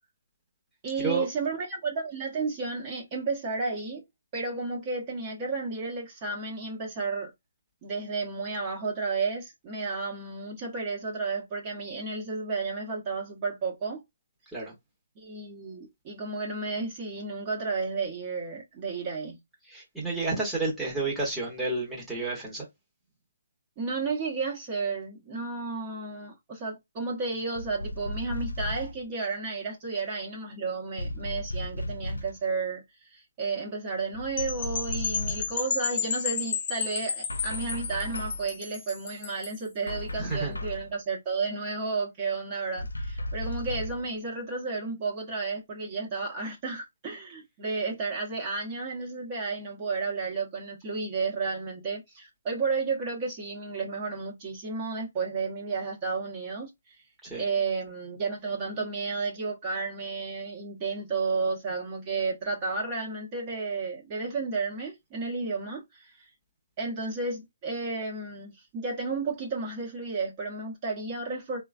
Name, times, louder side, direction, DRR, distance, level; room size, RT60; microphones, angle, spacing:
voice 1, 0.8-4.0 4.3-7.3 7.8-14.0 15.2-19.4 23.8-57.0 57.3-66.3 66.8-71.6, right 4 dB, 30° right, 1.0 m, -32 dB
voice 2, 19.7-22.6 40.2-40.5 57.2-57.4, right 3 dB, ahead, 1.0 m, -30 dB
sound 1, 27.6-29.0 31.0-32.4 34.1-35.6 37.3-38.5 39.9-40.9 42.8-44.1, left 1 dB, 90° left, 0.4 m, -35 dB
sound 2, 34.4-39.7, left 6 dB, 45° left, 0.6 m, -32 dB
3.2 x 2.2 x 2.4 m
figure-of-eight pair, 145°, 0 cm